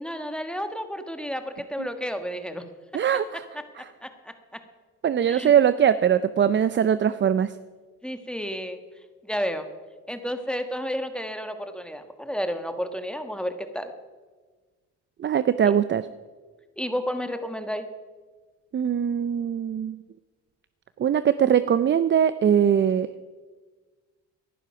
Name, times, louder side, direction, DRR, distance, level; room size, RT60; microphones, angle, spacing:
voice 1, 0.0-2.6 4.0-4.6 5.3-5.5 8.0-8.8 9.2-9.7 10.1-13.9 15.7-15.8 16.8-17.9, equal, 5° left, 8 dB, 1.4 m, -31 dB
voice 2, 2.9-3.4 5.0-7.5 15.2-16.1 18.7-20.0 21.0-23.1, right 8 dB, 40° right, 14 dB, 0.5 m, -21 dB
18.0 x 11.0 x 5.8 m, 1.4 s
cardioid pair, 90°, 30 cm